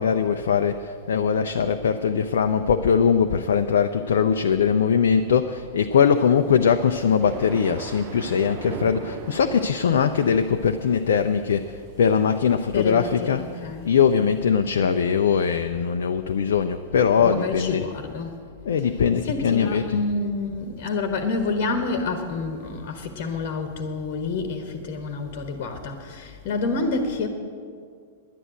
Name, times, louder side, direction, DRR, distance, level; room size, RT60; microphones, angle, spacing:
voice 1, 0.0-13.4 13.8-17.9 18.7-20.0, left 7 dB, 60° left, 7 dB, 0.5 m, -21 dB
sound 1, 6.4-14.4, right 7 dB, 35° right, 0.7 m, -40 dB
voice 2, 12.7-13.9 17.2-18.4 18.8-27.3, left 3 dB, 40° left, 6 dB, 1.3 m, -28 dB
10.5 x 10.0 x 7.7 m, 2.1 s
figure-of-eight pair, 95°, 0 cm